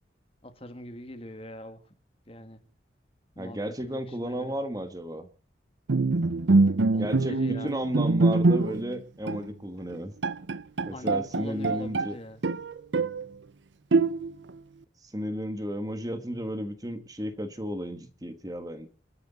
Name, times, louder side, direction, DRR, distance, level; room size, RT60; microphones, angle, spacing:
voice 1, 0.4-1.8 2.3-2.6 3.4-4.6 6.9-7.8 10.9-12.4, left 1 dB, 30° left, 9 dB, 2.0 m, -42 dB
voice 2, 3.4-5.3 7.0-10.1 10.8-12.2 15.0-18.9, equal, 20° right, 9 dB, 1.4 m, -33 dB
Bowed string instrument, 5.9-8.9 9.3-9.5 9.9-10.0 10.2-12.1 12.4-13.3 13.9-14.5, right 3 dB, 80° right, 0.7 m, -24 dB
29.0 x 9.6 x 4.1 m, 0.38 s
head